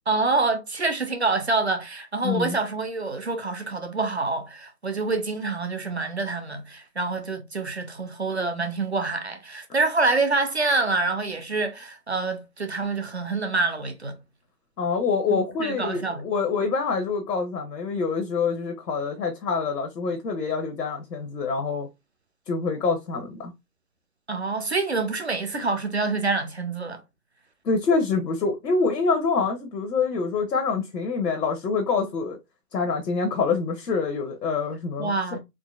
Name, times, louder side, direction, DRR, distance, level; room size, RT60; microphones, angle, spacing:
voice 1, 0.1-14.2 15.6-16.2 24.3-27.0 35.0-35.4, right 3 dB, 45° right, 0.5 m, -26 dB
voice 2, 2.2-2.6 14.8-21.9 22.5-23.5 27.6-32.4 32.7-35.4, left 4 dB, 80° left, 0.9 m, -26 dB
3.8 x 2.6 x 2.3 m
hypercardioid pair, 170°, 48 cm